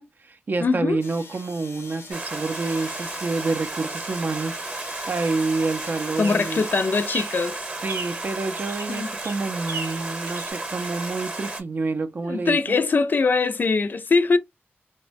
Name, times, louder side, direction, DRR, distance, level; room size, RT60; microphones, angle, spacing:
voice 1, 0.0-4.6 5.1-6.7 7.8-12.8, right 3 dB, 50° right, 0.4 m, -28 dB
voice 2, 0.6-1.0 6.2-7.6 8.9-9.1 12.2-14.4, left 4 dB, 50° left, 0.3 m, -22 dB
sound 1, 1.0-6.7, left 4 dB, 80° left, 0.6 m, -44 dB
sound 2, 1.3-10.5, right 3 dB, 85° right, 0.7 m, -42 dB
Stream, 2.1-11.6, right 2 dB, 25° right, 0.8 m, -33 dB
3.0 x 2.1 x 2.5 m
wide cardioid pair, 145°, 4 cm